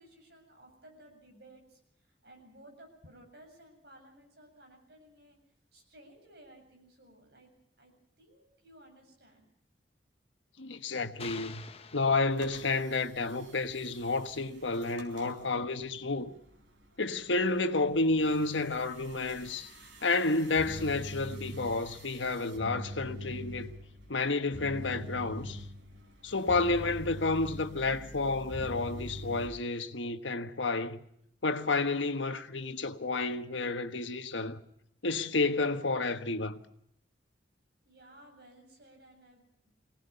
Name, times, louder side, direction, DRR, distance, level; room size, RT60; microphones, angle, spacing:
voice 1, 0.0-5.4 5.7-7.5 7.8-7.9 8.2-9.5 37.8-39.7, right 1 dB, 60° right, 7.6 m, -57 dB
voice 2, 10.6-16.3 17.0-19.7 20.0-23.7 24.1-25.6 26.2-31.0 31.4-34.6 35.0-36.6, left 3 dB, 90° left, 1.4 m, -30 dB
sound 1, 11.2-12.9, left 6 dB, 35° left, 0.8 m, -47 dB
sound 2, 12.3-29.5, equal, 85° right, 4.7 m, -45 dB
24.0 x 18.0 x 6.9 m
head